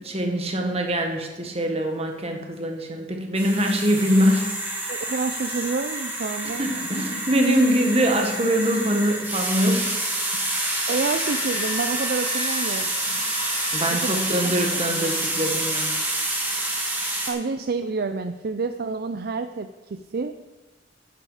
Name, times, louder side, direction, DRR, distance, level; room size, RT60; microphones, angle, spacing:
voice 1, 0.0-4.5 6.4-10.0 13.7-16.0, equal, 30° right, 3 dB, 1.6 m, -23 dB
sound 1, 3.3-17.3, right 1 dB, 10° right, 2.3 m, -28 dB
voice 2, 4.9-6.6 10.9-12.9 13.9-14.1 17.3-20.3, right 4 dB, 50° right, 9 dB, 0.4 m, -28 dB
sound 2, 8.4-15.2, left 3 dB, 30° left, 1.0 m, -39 dB
10.5 x 10.0 x 5.0 m, 1.2 s
head